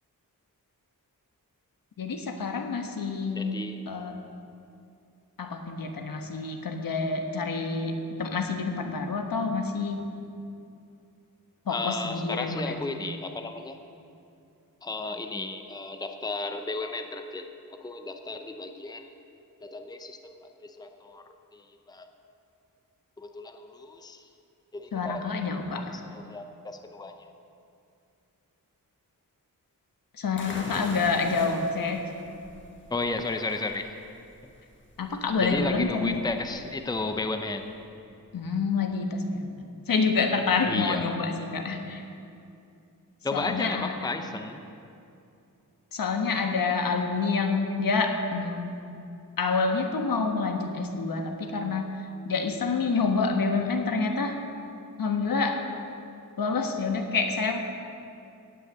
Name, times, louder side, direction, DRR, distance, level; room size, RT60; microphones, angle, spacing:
voice 1, 2.0-3.6 3.9-4.2 5.4-10.1 11.6-12.9 24.9-26.0 30.2-32.1 35.0-36.2 38.3-42.0 43.3-44.0 45.9-48.7 49.4-51.9 52.2-54.4 55.0-55.6 56.4-57.6, left 4 dB, 80° left, 4 dB, 1.3 m, -28 dB
voice 2, 3.4-3.9 11.7-13.8 14.8-19.1 19.6-21.2 21.5-22.1 23.2-24.2 24.7-25.3 25.7-27.2 30.5-30.6 32.9-33.9 35.4-37.7 40.7-41.1 43.2-44.6, left 3 dB, 10° left, 6 dB, 0.6 m, -34 dB
sound 1, 30.4-37.8, left 2 dB, 35° left, 1.5 m, -44 dB
17.0 x 6.5 x 8.1 m, 2.6 s
wide cardioid pair, 160°, 34 cm